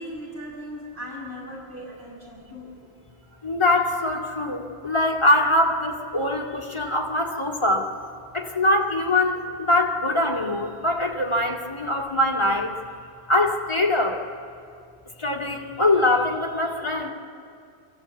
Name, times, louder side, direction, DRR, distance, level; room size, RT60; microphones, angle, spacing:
voice 1, 0.0-2.7, equal, 50° right, -6 dB, 6.7 m, -38 dB
voice 2, 3.4-7.9 8.3-12.7 13.3-14.2 15.2-17.1, left 1 dB, 25° left, 0 dB, 2.2 m, -23 dB
25.5 x 15.5 x 8.3 m, 2.3 s
omnidirectional pair, 1.2 m